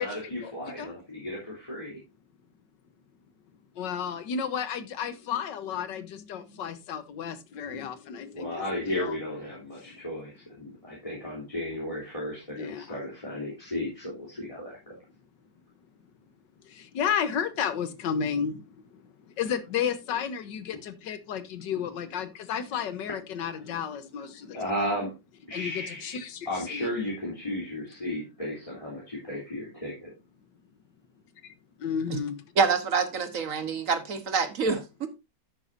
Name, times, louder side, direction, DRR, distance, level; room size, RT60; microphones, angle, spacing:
voice 1, 0.0-2.0 8.3-14.9 24.5-25.1 25.5-26.2 26.5-30.1 34.6-34.8, left 1 dB, 15° left, 3.5 m, -34 dB
voice 2, 3.7-9.2 9.8-10.0 12.6-13.0 16.6-24.6 25.5-26.9 31.4-31.5 31.8-32.4, left 7 dB, 70° left, 1.7 m, -32 dB
voice 3, 32.6-35.1, right 5 dB, 50° right, 1.5 m, -26 dB
11.5 x 9.4 x 2.7 m
omnidirectional pair, 2.0 m